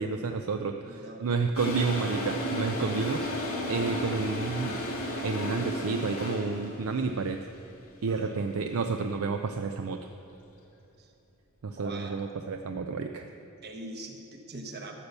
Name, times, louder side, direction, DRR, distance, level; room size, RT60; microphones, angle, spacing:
voice 1, 0.0-4.8 5.2-7.4 8.0-10.0 11.6-13.3, right 4 dB, 70° right, 6 dB, 0.5 m, -30 dB
voice 2, 0.8-1.5 8.1-8.4 11.0-11.1 11.8-12.2 13.6-14.9, right 2 dB, 50° right, 3 dB, 1.2 m, -42 dB
Toilet flush, 1.5-6.8, left 1 dB, 90° left, 2.4 m, -33 dB
12.5 x 6.9 x 6.8 m, 2.8 s
head